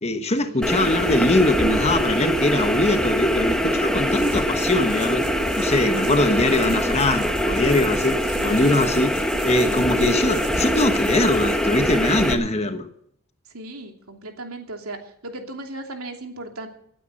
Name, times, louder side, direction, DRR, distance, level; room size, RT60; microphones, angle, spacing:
voice 1, 0.0-5.3 5.6-9.1 9.4-12.9, left 2 dB, 30° left, 1.2 m, -22 dB
sound 1, 0.6-12.3, equal, 5° left, 1.2 m, -23 dB
sound 2, 4.0-12.1, right 8 dB, 50° right, 2.8 m, -42 dB
voice 2, 8.3-8.9 13.5-16.7, right 2 dB, 85° right, 2.9 m, -36 dB
18.5 x 9.3 x 6.5 m
head